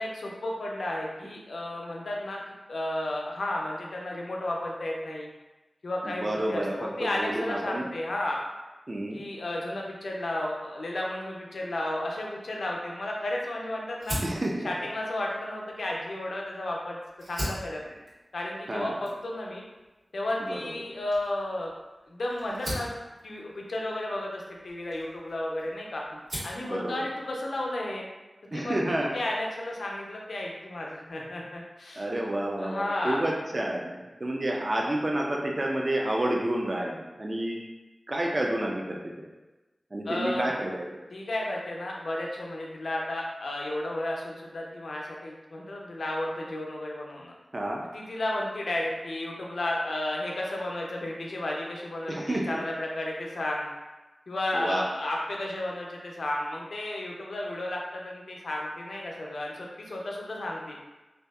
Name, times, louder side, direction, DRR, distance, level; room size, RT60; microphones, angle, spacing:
voice 1, 0.0-2.4 2.7-5.3 5.8-8.4 9.1-14.2 14.6-17.0 17.3-17.8 18.3-19.6 20.1-21.7 22.1-22.9 23.2-26.0 26.4-28.1 28.4-28.8 29.1-32.1 32.6-33.2 40.1-40.5 41.1-47.3 47.9-53.7 54.3-60.8, left 1 dB, 85° left, -2 dB, 0.4 m, -33 dB
voice 2, 6.0-7.8 8.9-9.2 14.2-14.7 18.7-19.0 20.5-20.7 26.6-27.0 28.5-29.1 32.0-37.6 38.1-39.3 39.9-40.9 47.5-47.8 52.1-52.5 54.5-54.8, right 1 dB, 40° right, -1 dB, 0.3 m, -30 dB
Fire, 14.0-16.6 17.1-25.7 26.0-26.7, equal, 65° right, 1.4 m, -40 dB
2.6 x 2.3 x 2.2 m, 1.1 s
wide cardioid pair, 75°, 0 cm